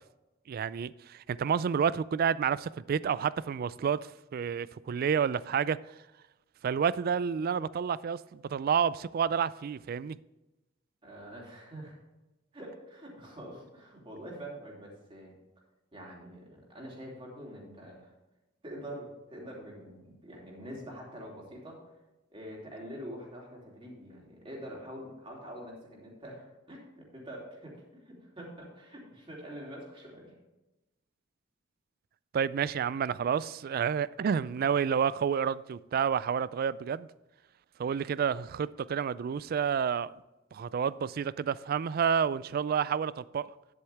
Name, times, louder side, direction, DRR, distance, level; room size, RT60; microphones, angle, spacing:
voice 1, 0.5-4.0 4.3-5.8 6.6-10.2 32.3-37.1 37.8-40.1 40.5-43.5, right 7 dB, 50° right, 19 dB, 0.3 m, -29 dB
voice 2, 11.0-11.9 12.5-15.3 15.9-18.1 18.6-21.8 22.3-30.3, equal, 30° right, -3 dB, 2.9 m, -45 dB
10.0 x 8.1 x 3.4 m, 1.0 s
head